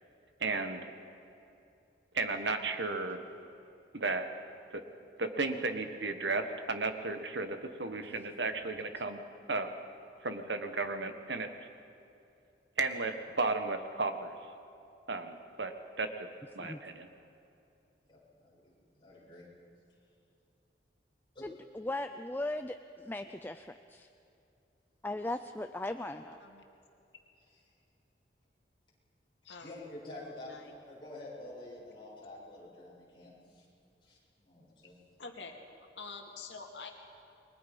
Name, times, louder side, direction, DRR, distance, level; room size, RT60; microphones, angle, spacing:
voice 1, 0.4-0.9 2.1-3.2 3.9-4.3 4.7-4.8 5.2-9.2 9.5-9.7 10.2-11.5 12.8-14.3 15.1-15.7 16.0-16.3 16.5-17.1, right 3 dB, 80° right, 7 dB, 1.6 m, -34 dB
voice 2, 18.1-18.7 19.0-19.5 29.6-33.7 34.0-35.0, left 1 dB, 30° left, -6 dB, 7.7 m, -48 dB
voice 3, 21.4-24.1 25.0-26.4, left 2 dB, 10° left, 8 dB, 0.5 m, -38 dB
voice 4, 29.4-30.0 30.4-30.8 35.2-35.6 35.9-36.9, left 4 dB, 85° left, 2 dB, 2.4 m, -46 dB
29.5 x 22.5 x 5.5 m, 2.7 s
head